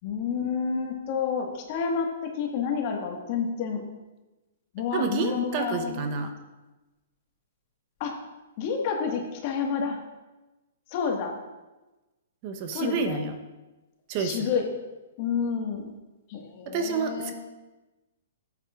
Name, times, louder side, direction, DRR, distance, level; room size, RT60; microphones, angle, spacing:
voice 1, 0.0-3.9 4.7-6.0 8.0-8.2 8.6-10.0 10.9-11.3 12.7-13.2 14.2-14.6 15.2-15.9 16.3-17.3, left 6 dB, 45° left, 2 dB, 1.7 m, -29 dB
voice 2, 4.9-6.3 12.4-13.3 14.1-14.5 16.7-17.3, right 5 dB, 40° right, 5 dB, 1.0 m, -29 dB
13.0 x 8.3 x 2.5 m, 1.1 s
hypercardioid pair, 135°, 0 cm